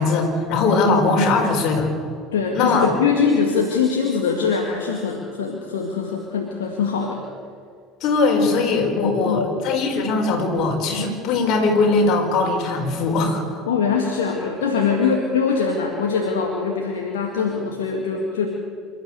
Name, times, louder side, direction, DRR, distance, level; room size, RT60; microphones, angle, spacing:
voice 1, 0.0-1.9 2.5-2.9 8.0-13.6, left 3 dB, 55° left, 2 dB, 4.9 m, -20 dB
voice 2, 2.3-7.2 9.0-9.6 13.7-18.5, left 5 dB, 75° left, 1 dB, 2.1 m, -22 dB
27.5 x 13.5 x 8.0 m, 2.2 s
figure-of-eight pair, 65°, 0 cm